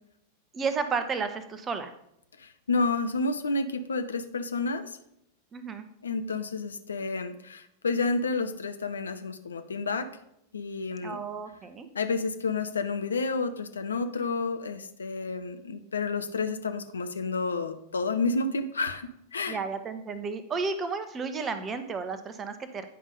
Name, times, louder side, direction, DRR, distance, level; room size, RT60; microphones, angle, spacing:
voice 1, 0.5-1.9 5.5-5.9 11.0-11.9 19.5-22.8, right 5 dB, 20° right, 9 dB, 1.0 m, -32 dB
voice 2, 2.4-5.0 6.0-10.1 10.5-11.2 11.9-19.6, left 3 dB, 70° left, 9 dB, 0.8 m, -30 dB
10.0 x 5.5 x 5.3 m, 0.77 s
figure-of-eight pair, 90°, 0 cm